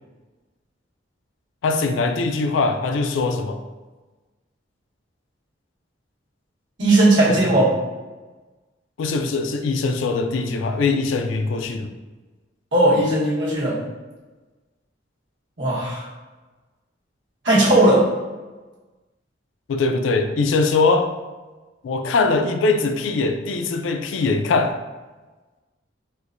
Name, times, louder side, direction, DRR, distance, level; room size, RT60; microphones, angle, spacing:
voice 1, 1.6-3.6 7.3-7.4 9.0-11.9 19.7-21.1 21.8-24.8, left 3 dB, 90° left, 6 dB, 0.3 m, -21 dB
voice 2, 6.8-7.8 12.7-13.8 15.6-16.1 17.4-18.1, right 1 dB, 75° right, -8 dB, 1.2 m, -17 dB
4.4 x 2.2 x 2.5 m, 1.2 s
head